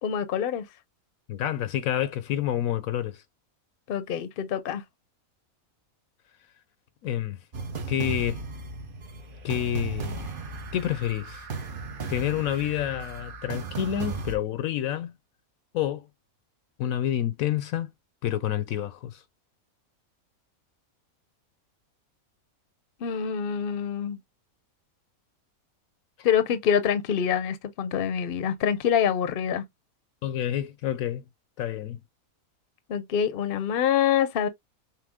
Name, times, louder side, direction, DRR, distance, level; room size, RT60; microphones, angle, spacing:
voice 1, 0.0-0.6 3.9-4.8 23.0-24.2 26.2-29.6 32.9-34.5, left 8 dB, 50° left, 0.7 m, -25 dB
voice 2, 1.3-3.2 7.0-7.4 7.9-8.4 9.4-10.3 10.7-11.4 12.1-15.1 15.7-16.1 16.8-17.9 18.2-19.2 30.2-31.2 31.6-32.0, left 11 dB, 75° left, 1.0 m, -28 dB
sound 1, 7.5-14.4, right 4 dB, 45° right, 0.9 m, -36 dB
5.8 x 2.0 x 3.5 m
omnidirectional pair, 1.5 m